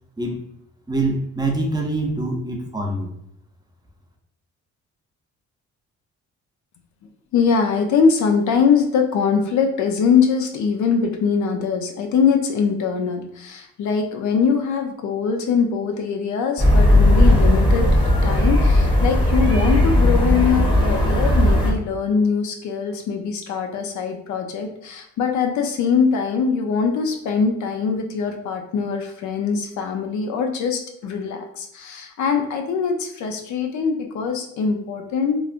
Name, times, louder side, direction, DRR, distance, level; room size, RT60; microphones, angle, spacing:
voice 1, 0.9-3.1, right 2 dB, 15° right, 1 dB, 0.5 m, -24 dB
voice 2, 7.3-17.9 18.2-35.4, left 6 dB, 70° left, 4 dB, 0.6 m, -22 dB
sound 1, 16.6-21.7, left 1 dB, 15° left, 0.9 m, -16 dB
3.2 x 2.4 x 2.4 m, 0.76 s
cardioid pair, 90°, 30 cm